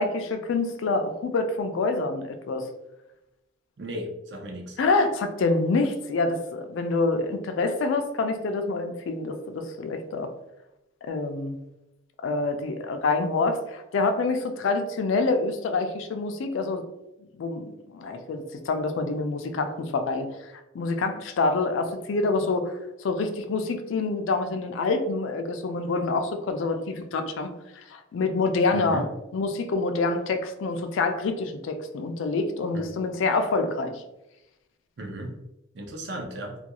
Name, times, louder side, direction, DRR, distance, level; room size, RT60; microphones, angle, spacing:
voice 1, 0.0-2.7 4.8-10.3 11.0-11.6 12.2-16.8 17.4-20.3 20.7-22.7 23.0-29.0 29.3-34.0, left 3 dB, 75° left, 7 dB, 0.3 m, -26 dB
voice 2, 3.8-4.8 28.7-29.0 32.7-32.9 35.0-35.3 35.7-36.6, right 1 dB, 55° right, 2 dB, 0.5 m, -35 dB
2.3 x 2.2 x 2.8 m, 0.91 s
head